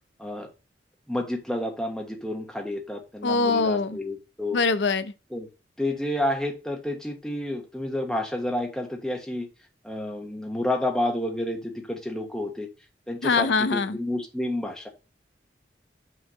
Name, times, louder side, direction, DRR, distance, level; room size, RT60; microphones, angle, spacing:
voice 1, 0.2-0.5 1.1-4.6 5.3-5.5 5.8-9.5 9.8-12.7 13.1-14.9, left 1 dB, 5° left, 1.3 m, -30 dB
voice 2, 3.2-4.0 4.5-5.1 13.2-14.0, left 4 dB, 75° left, 0.5 m, -23 dB
6.2 x 3.5 x 5.6 m
head